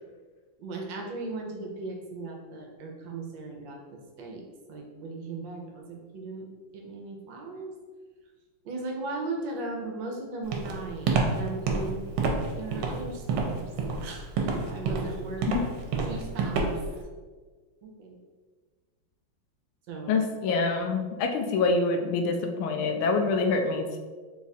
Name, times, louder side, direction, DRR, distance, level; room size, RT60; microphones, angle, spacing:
voice 1, 0.6-4.4 4.7-6.5 6.7-7.7 8.6-12.0 12.6-13.7 14.0-15.5 16.1-16.6 17.8-18.2 19.9-20.2, right 3 dB, 70° right, 1 dB, 1.3 m, -37 dB
Walk footsteps, 10.5-17.0, right 4 dB, 85° right, 1.4 m, -28 dB
voice 2, 20.1-24.0, left 3 dB, 85° left, 5 dB, 1.4 m, -26 dB
3.9 x 2.4 x 4.0 m, 1.4 s
omnidirectional pair, 2.2 m